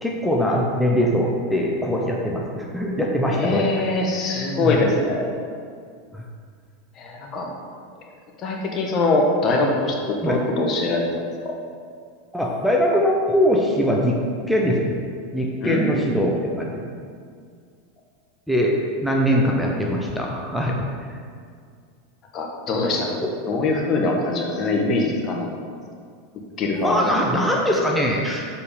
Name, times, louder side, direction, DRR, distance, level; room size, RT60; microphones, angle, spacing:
voice 1, 0.0-3.8 4.6-4.8 6.1-6.2 10.2-10.4 12.3-14.2 14.5-14.9 15.3-16.8 18.5-18.7 19.0-20.8 21.1-21.2 23.2-23.3 26.7-28.5, equal, ahead, -2 dB, 1.0 m, -22 dB
voice 2, 3.3-5.3 7.0-7.5 8.4-11.0 11.4-11.6 15.6-16.1 22.3-23.2 23.5-25.5 26.6-27.0, left 2 dB, 40° left, 0 dB, 1.3 m, -23 dB
6.8 x 4.8 x 5.1 m, 2.1 s
hypercardioid pair, 90°, 0 cm